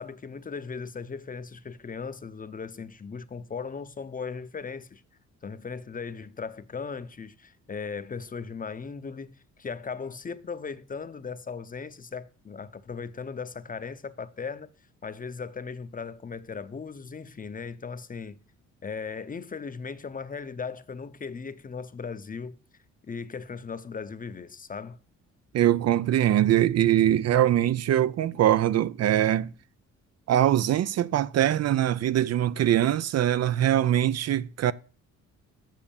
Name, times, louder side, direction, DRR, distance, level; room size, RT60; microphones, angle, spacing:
voice 1, 0.0-5.0 5.4-14.7 15.0-18.4 18.8-22.6 23.0-25.0, left 5 dB, 30° left, 0.8 m, -37 dB
voice 2, 25.5-29.5 30.3-34.7, right 11 dB, 55° right, 0.5 m, -22 dB
7.5 x 6.6 x 7.1 m
cardioid pair, 90°, 30 cm